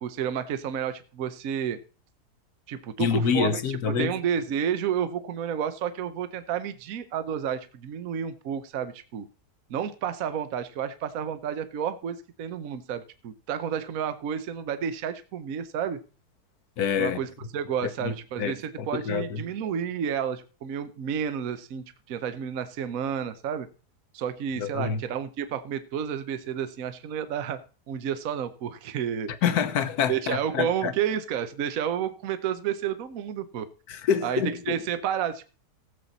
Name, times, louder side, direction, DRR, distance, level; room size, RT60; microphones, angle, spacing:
voice 1, 0.0-1.8 2.7-9.2 9.7-16.0 17.0-23.7 24.1-27.6 27.9-29.3 30.1-33.7 34.2-35.4, right 8 dB, 60° right, 1.2 m, -31 dB
voice 2, 3.0-4.1 16.8-17.2 18.0-18.5 18.8-19.4 24.6-25.0 29.4-30.9 33.9-34.8, left 7 dB, 70° left, 1.4 m, -26 dB
17.0 x 7.4 x 4.0 m
omnidirectional pair, 1.7 m